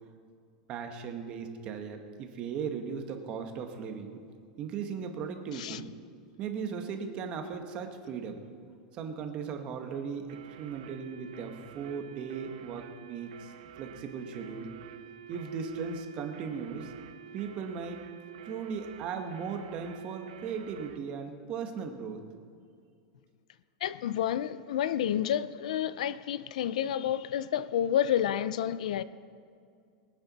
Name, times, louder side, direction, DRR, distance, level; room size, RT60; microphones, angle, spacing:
voice 1, 0.7-4.2 4.6-5.9 6.4-8.4 8.9-10.3 10.6-13.5 13.8-14.7 15.3-16.9 17.3-18.1 18.4-22.2, right 6 dB, 25° right, 1.1 m, -37 dB
sound 1, 10.3-21.0, right 10 dB, 65° right, 1.0 m, -49 dB
voice 2, 23.8-29.0, left 10 dB, 75° left, 0.5 m, -30 dB
22.0 x 8.9 x 4.1 m
supercardioid pair, 175°, 4 cm